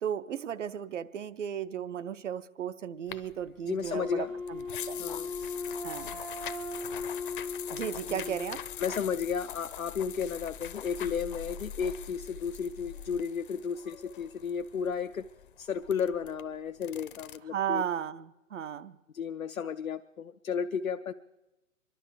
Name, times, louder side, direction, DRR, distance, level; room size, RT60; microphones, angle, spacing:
voice 1, 0.0-4.6 4.9-5.1 5.8-6.2 7.7-8.6 17.5-19.0, right 9 dB, 65° right, 14 dB, 0.7 m, -35 dB
sound 1, 3.1-17.4, left 9 dB, 40° left, 0.6 m, -43 dB
voice 2, 3.6-4.3 5.0-5.3 8.1-8.4 8.8-15.3 15.6-17.8 19.1-21.1, left 6 dB, 90° left, 9 dB, 0.6 m, -33 dB
Wind instrument woodwind instrument, 3.9-8.9, left 3 dB, ahead, 0.5 m, -38 dB
25.0 x 11.5 x 4.8 m, 1.0 s
figure-of-eight pair, 120°, 40 cm